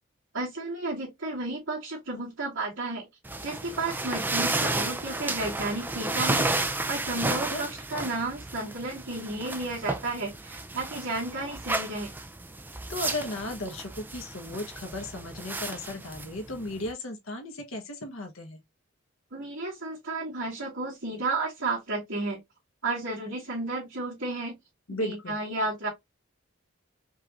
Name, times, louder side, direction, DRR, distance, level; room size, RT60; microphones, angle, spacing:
voice 1, 0.3-3.1 3.4-12.1 19.3-22.4 22.8-24.6 25.0-25.9, right 2 dB, 65° right, 2.5 m, -32 dB
sound 1, 3.2-16.9, right 2 dB, 10° right, 0.4 m, -32 dB
voice 2, 7.1-7.6 12.9-18.6 24.9-25.4, left 1 dB, 75° left, 1.2 m, -35 dB
5.3 x 3.2 x 2.5 m
head